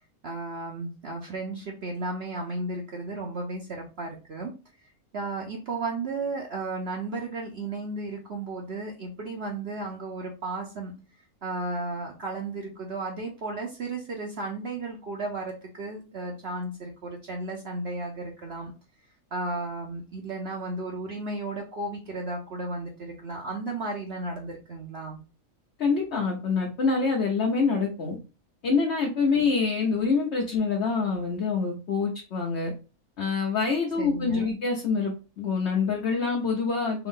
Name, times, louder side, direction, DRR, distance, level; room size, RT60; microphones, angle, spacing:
voice 1, 0.2-4.5 5.1-10.9 11.4-18.7 19.3-25.2 34.0-34.5, right 2 dB, 50° right, 0 dB, 0.9 m, -34 dB
voice 2, 25.8-28.2 28.6-32.7 33.2-37.1, left 4 dB, 55° left, -1 dB, 1.1 m, -26 dB
3.5 x 3.1 x 3.7 m, 0.32 s
omnidirectional pair, 1.5 m